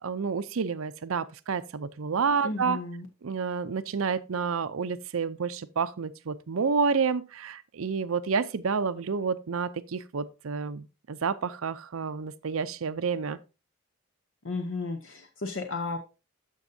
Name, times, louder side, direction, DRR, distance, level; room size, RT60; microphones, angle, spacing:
voice 1, 0.0-2.8 3.2-13.4, right 5 dB, 75° right, 0.5 m, -29 dB
voice 2, 2.4-3.1 14.4-16.0, left 3 dB, 65° left, 0.8 m, -33 dB
13.0 x 5.4 x 2.7 m
head